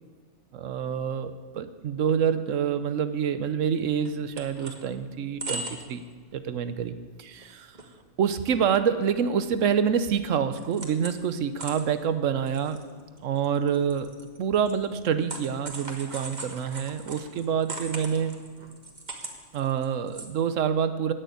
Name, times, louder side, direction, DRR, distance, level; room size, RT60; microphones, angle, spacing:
voice 1, 0.5-6.0 6.3-7.7 8.2-12.8 13.2-14.1 14.4-18.4 19.5-21.1, right 7 dB, 75° right, 11 dB, 1.1 m, -27 dB
sound 1, 3.8-4.8 5.2-6.0 6.3-6.5 6.9-7.0 7.4-7.9 8.2-8.3 8.9-9.9 10.2-11.3 11.6-20.3, right 2 dB, 35° right, 1.5 m, -40 dB
15.5 x 6.6 x 9.3 m, 1.5 s
omnidirectional pair, 1.3 m